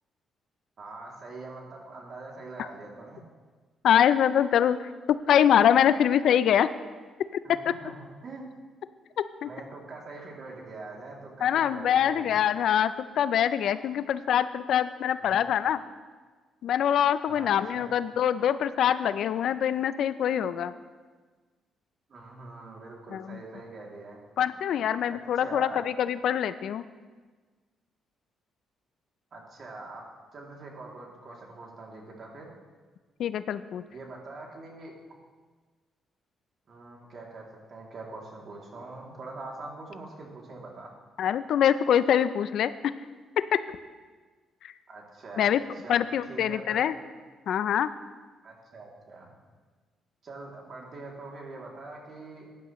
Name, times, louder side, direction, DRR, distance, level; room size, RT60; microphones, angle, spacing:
voice 1, 0.8-3.2 7.4-8.5 9.4-12.3 15.2-15.3 17.3-17.9 22.1-24.2 25.1-25.8 29.3-30.0 30.3-32.5 33.9-34.9 36.7-40.9 44.9-45.5 45.8-46.9 48.4-49.3 50.2-52.5, right 3 dB, 50° right, -1 dB, 2.7 m, -43 dB
voice 2, 3.8-4.8 5.1-6.7 7.5-7.6 9.4-9.5 11.4-15.8 16.6-20.7 23.1-23.4 24.4-26.8 33.2-33.8 41.2-42.7 43.4-43.6 44.6-44.7 45.4-45.6 45.9-47.0 47.5-47.9, left 9 dB, 70° left, 14 dB, 0.4 m, -24 dB
16.0 x 10.5 x 3.1 m, 1.4 s
cardioid pair, 90°, 0 cm